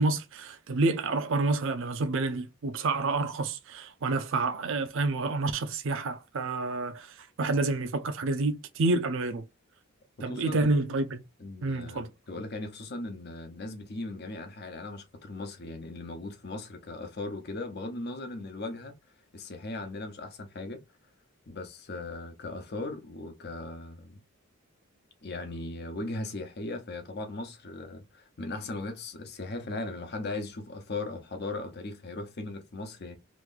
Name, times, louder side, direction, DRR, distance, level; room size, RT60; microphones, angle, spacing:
voice 1, 0.0-9.4 10.2-11.2 11.6-12.1, right 3 dB, 65° right, 0.5 m, -28 dB
voice 2, 10.3-10.7 11.4-19.0 19.3-20.8 21.5-24.2 25.2-33.2, left 2 dB, 50° left, 0.8 m, -38 dB
3.0 x 2.6 x 3.8 m
head